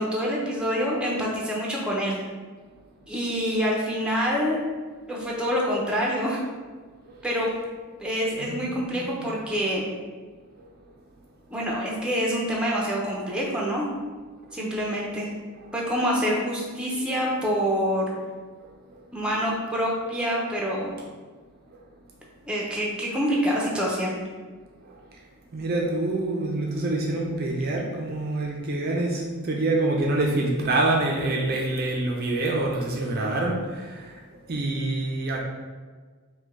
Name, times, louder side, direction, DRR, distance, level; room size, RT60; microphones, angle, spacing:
voice 1, 0.0-2.2 3.1-4.6 5.1-6.4 7.2-7.5 8.0-9.8 11.5-13.9 14.5-15.3 15.7-18.1 19.1-20.9 22.5-24.1, equal, 5° right, -3 dB, 0.6 m, -26 dB
voice 2, 8.4-9.3 14.8-14.9 15.6-15.7 18.9-19.0 21.7-21.8 24.8-25.0 25.5-34.2 34.5-35.4, right 2 dB, 45° right, -1 dB, 0.5 m, -26 dB
5.0 x 2.2 x 3.5 m, 1.5 s
head